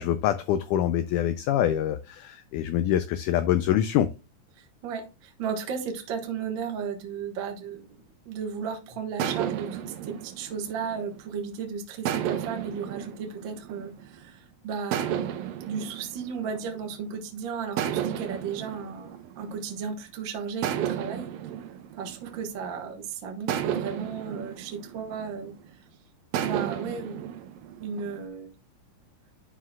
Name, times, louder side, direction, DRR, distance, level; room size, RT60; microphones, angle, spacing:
voice 1, 0.0-4.1, left 11 dB, 85° left, 1.8 m, -25 dB
voice 2, 4.6-15.3 15.7-21.3 22.0-25.5 26.4-27.2 27.8-28.5, right 6 dB, 55° right, 1.4 m, -35 dB
sound 1, 9.2-11.5 12.1-14.3 14.9-17.2 17.8-20.0 20.6-22.9 23.5-25.7 26.3-28.2, right 10 dB, 80° right, 2.5 m, -33 dB
11.5 x 5.0 x 2.3 m
omnidirectional pair, 4.2 m